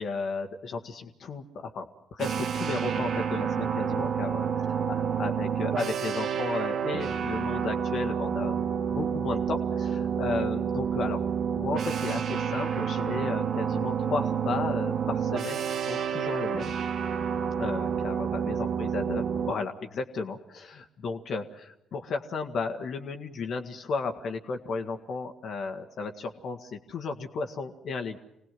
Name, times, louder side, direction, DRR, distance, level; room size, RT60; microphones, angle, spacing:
voice 1, 0.0-4.5 4.9-8.6 8.9-11.2 11.6-16.7 17.6-28.2, left 4 dB, 55° left, 4 dB, 1.6 m, -34 dB
sound 1, 2.2-19.5, right 7 dB, 50° right, 1.2 m, -29 dB
26.5 x 19.0 x 7.7 m, 0.82 s
figure-of-eight pair, 45°, 0 cm